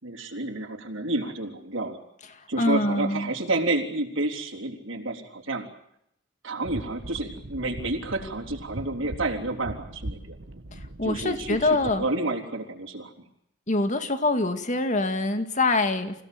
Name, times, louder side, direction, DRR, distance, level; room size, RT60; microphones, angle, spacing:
voice 1, 0.0-2.0 2.5-5.7 6.4-10.3 11.0-13.1, right 2 dB, 85° right, 1 dB, 3.7 m, -30 dB
voice 2, 2.6-3.3 11.0-12.0 13.7-16.1, left 2 dB, 40° left, 8 dB, 2.2 m, -24 dB
sound 1, 6.6-12.1, right 1 dB, 65° right, 1.5 m, -40 dB
27.5 x 17.0 x 9.4 m, 0.77 s
head